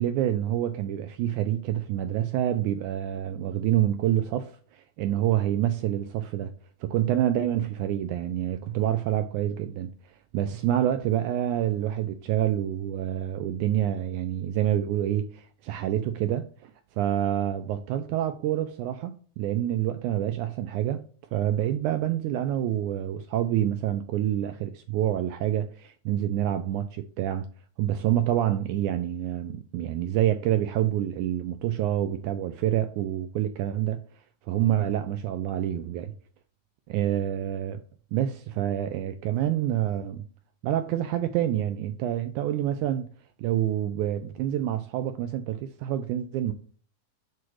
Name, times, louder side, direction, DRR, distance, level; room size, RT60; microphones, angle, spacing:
voice 1, 0.0-6.5 6.8-9.9 10.3-21.0 21.3-27.5 27.8-34.0 34.5-36.1 36.9-37.8 38.1-40.2 40.6-43.1 43.4-46.5, right 11 dB, 85° right, 1.7 m, -27 dB
8.3 x 3.0 x 4.6 m
omnidirectional pair, 3.9 m